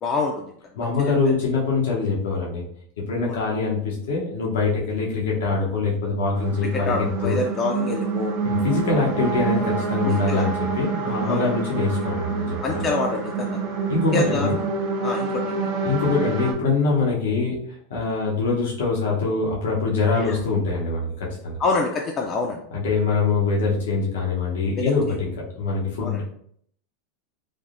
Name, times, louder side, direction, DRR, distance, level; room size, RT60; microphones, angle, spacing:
voice 1, 0.0-0.9 3.3-3.4 6.7-8.3 10.1-10.5 11.0-11.5 12.6-13.6 14.1-14.5 15.0-15.7 20.1-20.4 21.6-22.6 24.8-25.2 26.0-26.2, left 3 dB, 30° left, 0 dB, 0.3 m, -27 dB
voice 2, 0.8-2.6 3.1-7.3 8.4-12.8 13.9-14.6 15.8-17.6 17.9-21.1 21.4-21.6 22.7-25.3 25.6-26.2, left 4 dB, 90° left, -4 dB, 0.8 m, -23 dB
sound 1, 6.3-16.5, right 4 dB, 70° right, 0.9 m, -27 dB
3.4 x 2.0 x 2.5 m, 0.64 s
supercardioid pair, 130°, 0 cm